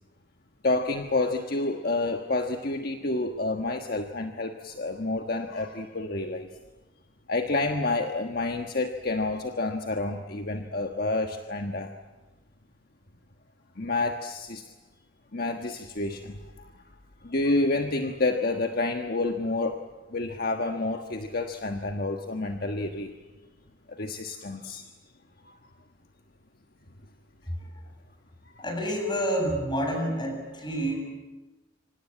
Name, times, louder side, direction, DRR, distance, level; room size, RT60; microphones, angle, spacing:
voice 1, 0.6-6.5 7.3-11.9 13.8-14.7 15.3-16.7 17.2-19.8 20.1-23.1 23.9-24.9 25.4-25.6, left 2 dB, 50° left, 4 dB, 1.4 m, -29 dB
voice 2, 28.6-31.0, equal, 25° left, 3 dB, 7.5 m, -28 dB
26.5 x 25.5 x 8.8 m, 1.2 s
head